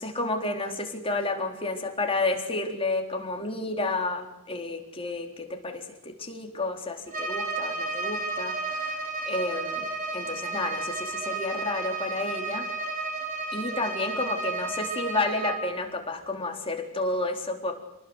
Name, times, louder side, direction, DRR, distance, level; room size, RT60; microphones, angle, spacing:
voice 1, 0.0-9.0 9.2-12.7 13.5-17.7, left 2 dB, 25° left, 2 dB, 3.9 m, -31 dB
Bowed string instrument, 7.1-15.7, right 3 dB, 35° right, 5.5 m, -32 dB
28.5 x 20.0 x 8.1 m, 0.89 s
head